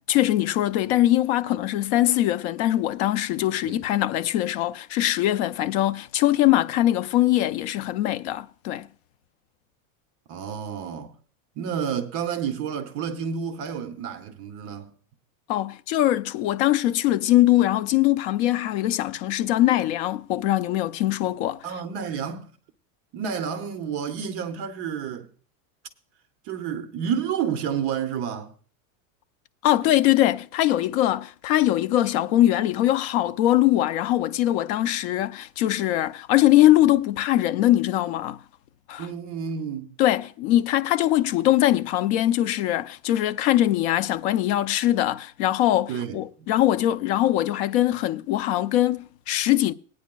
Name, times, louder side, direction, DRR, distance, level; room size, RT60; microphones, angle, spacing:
voice 1, 0.0-8.9 15.5-21.6 29.6-38.4 38.9-39.1 40.0-49.7, left 14 dB, 50° left, 0.5 m, -22 dB
voice 2, 10.3-11.1 11.6-14.9 21.6-22.5 23.1-25.3 26.4-28.5 39.0-39.9 45.9-46.5, right 7 dB, 35° right, 0.6 m, -30 dB
19.5 x 9.4 x 2.2 m
supercardioid pair, 160°, 44 cm